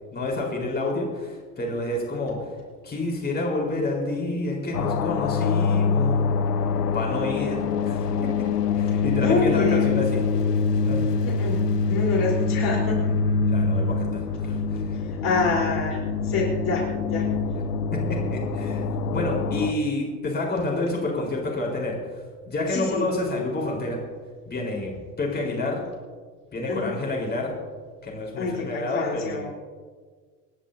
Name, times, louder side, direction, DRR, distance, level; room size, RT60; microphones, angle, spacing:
voice 1, 0.1-2.4 2.8-6.4 6.9-8.3 8.8-10.2 10.8-11.0 13.5-15.0 17.9-18.8 19.1-22.0 22.5-24.0 24.5-24.9 25.2-25.8 26.5-27.5 28.0-29.5, left 2 dB, 20° left, -2 dB, 4.2 m, -29 dB
sound 1, 4.7-19.7, left 5 dB, 80° left, 0.8 m, -25 dB
voice 2, 9.2-9.9 11.2-11.6 11.9-13.0 15.1-16.8 17.1-17.3 22.7-23.1 26.7-27.0 28.4-29.5, left 3 dB, 45° left, -3 dB, 4.0 m, -26 dB
28.0 x 11.0 x 2.7 m, 1.5 s
figure-of-eight pair, 75°, 47 cm